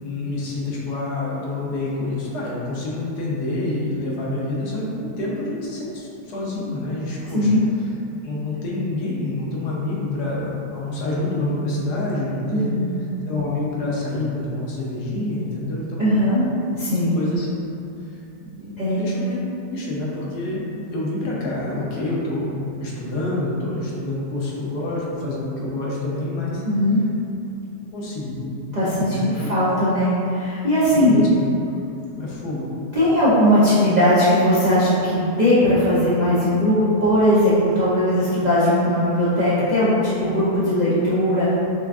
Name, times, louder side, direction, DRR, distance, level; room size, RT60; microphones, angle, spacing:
voice 1, 0.0-7.5 8.2-12.7 13.3-16.1 17.1-17.5 18.1-19.4 19.7-26.6 27.9-28.5 29.0-29.3 30.9-31.3 32.2-32.7, left 2 dB, 70° left, -5 dB, 1.2 m, -27 dB
voice 2, 12.5-12.9 16.0-16.4 16.8-17.1 18.8-19.2 26.6-27.0 28.7-31.2 32.9-41.5, equal, 65° right, -12 dB, 0.4 m, -19 dB
5.8 x 2.4 x 2.3 m, 2.8 s
omnidirectional pair, 1.9 m